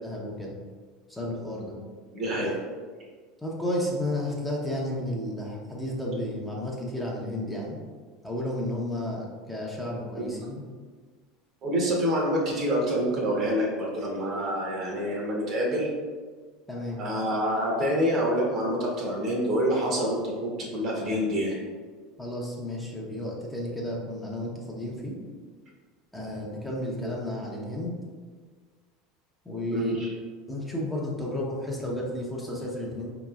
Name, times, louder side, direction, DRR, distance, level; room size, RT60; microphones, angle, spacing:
voice 1, 0.0-0.5 1.1-1.8 3.4-7.8 8.2-10.6 16.7-17.0 22.2-25.2 26.1-27.9 29.4-29.9 30.5-33.1, left 1 dB, 5° left, -3 dB, 0.8 m, -32 dB
voice 2, 2.1-2.6 10.2-10.3 11.6-15.9 17.0-21.6 27.0-27.1 29.7-30.1, equal, 45° right, -1 dB, 1.0 m, -27 dB
4.6 x 2.9 x 2.4 m, 1.5 s
hypercardioid pair, 80°, 0 cm